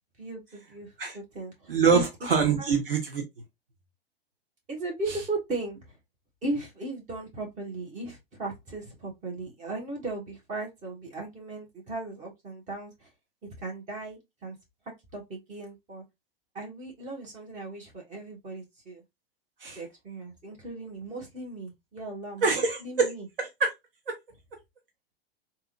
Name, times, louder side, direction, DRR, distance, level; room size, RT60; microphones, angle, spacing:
voice 1, 0.2-2.0 2.6-2.7 4.7-6.0 6.4-13.1 13.6-14.6 15.1-16.0 16.5-19.0 19.8-23.3, right 2 dB, 25° right, 1.7 m, -37 dB
voice 2, 1.7-3.2 19.6-19.8 22.4-23.1 23.4-23.7, right 5 dB, 65° right, 1.1 m, -24 dB
3.5 x 2.9 x 2.5 m
figure-of-eight pair, 95°, 30 cm